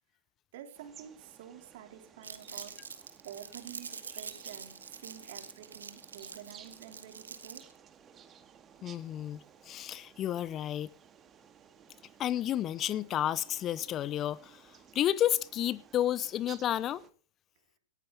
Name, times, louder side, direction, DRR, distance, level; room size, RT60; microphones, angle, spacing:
voice 1, 0.5-7.6, right 10 dB, 55° right, 3.8 m, -49 dB
sound 1, 0.7-17.1, right 8 dB, 25° right, 1.9 m, -57 dB
Crumpling crinkling, 2.2-7.8, right 5 dB, 85° right, 1.9 m, -45 dB
voice 2, 8.8-10.9 12.2-14.6 14.9-17.0, left 11 dB, 30° left, 0.7 m, -31 dB
18.5 x 14.5 x 4.0 m
hypercardioid pair, 105°, 0 cm